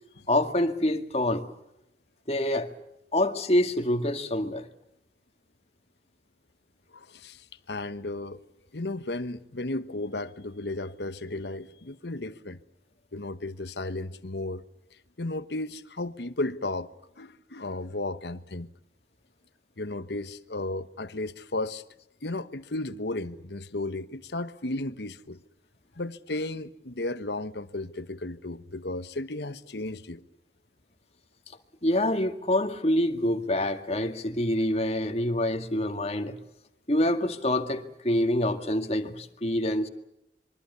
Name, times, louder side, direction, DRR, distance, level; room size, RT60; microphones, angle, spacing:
voice 1, 0.3-1.4 2.3-2.7 3.1-4.7 31.8-36.4 36.9-39.9, left 1 dB, 35° left, 2.0 m, -26 dB
voice 2, 6.9-8.4 8.7-12.6 13.1-14.6 15.2-16.9 17.2-18.7 19.8-21.8 22.2-25.4 26.0-30.2, left 2 dB, 75° left, 1.2 m, -34 dB
26.5 x 23.5 x 7.0 m
head